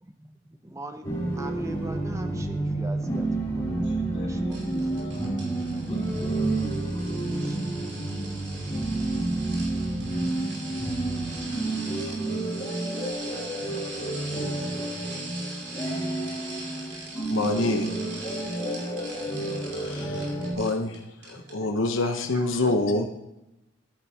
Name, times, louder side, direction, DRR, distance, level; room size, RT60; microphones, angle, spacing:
voice 1, 0.0-6.1 7.4-7.9 16.9-17.3 21.3-21.7 22.3-22.7, right 1 dB, 15° right, 7 dB, 0.7 m, -43 dB
sound 1, 1.0-20.5, right 2 dB, 15° left, 3.7 m, -30 dB
voice 2, 3.8-6.6 19.4-19.9, left 2 dB, 55° left, -2 dB, 2.2 m, -47 dB
sound 2, 4.5-21.0 21.2-21.5 21.9-22.0, right 2 dB, 55° right, 2.9 m, -41 dB
voice 3, 17.3-17.9 19.7-21.0 21.3-23.1, left 2 dB, 75° left, 4 dB, 1.0 m, -26 dB
13.0 x 9.6 x 2.9 m, 0.91 s
head